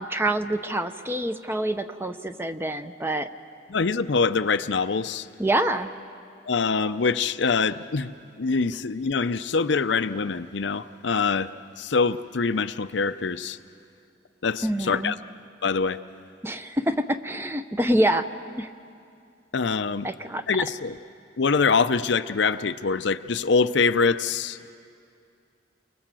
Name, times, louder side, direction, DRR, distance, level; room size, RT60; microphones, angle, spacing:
voice 1, 0.0-3.3 5.4-5.9 14.6-15.1 16.4-18.3 18.6-18.7 20.0-20.7, right 1 dB, 10° right, 9 dB, 0.7 m, -26 dB
voice 2, 3.7-5.3 6.5-11.5 11.8-13.6 14.4-15.2 15.6-16.0 19.5-20.1 20.5-21.0 21.4-24.6, left 4 dB, 70° left, 11 dB, 0.6 m, -24 dB
29.5 x 24.0 x 7.6 m, 2.4 s
head